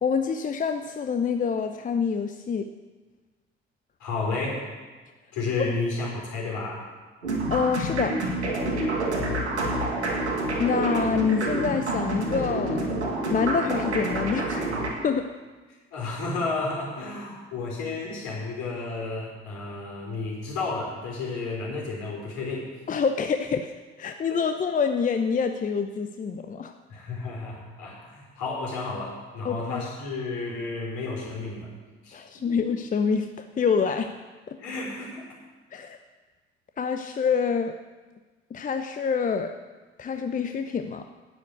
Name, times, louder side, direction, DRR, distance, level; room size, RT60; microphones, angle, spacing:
voice 1, 0.0-2.7 5.6-5.7 7.5-8.2 10.6-12.9 13.3-14.6 15.0-15.3 22.9-26.7 29.4-29.9 32.1-34.1 34.5-34.6 35.7-36.0 36.8-37.7 38.5-39.5 40.0-41.0, left 6 dB, 25° left, 7 dB, 0.7 m, -26 dB
voice 2, 4.0-4.7 5.3-6.9 8.9-9.2 15.9-22.8 24.3-24.4 26.9-31.7 32.0-32.5 33.9-34.0 34.6-35.2, left 3 dB, 60° left, -3 dB, 4.5 m, -32 dB
sound 1, 7.2-14.9, right 2 dB, 80° right, 1.9 m, -28 dB
9.7 x 9.2 x 8.0 m, 1.3 s
figure-of-eight pair, 50°, 33 cm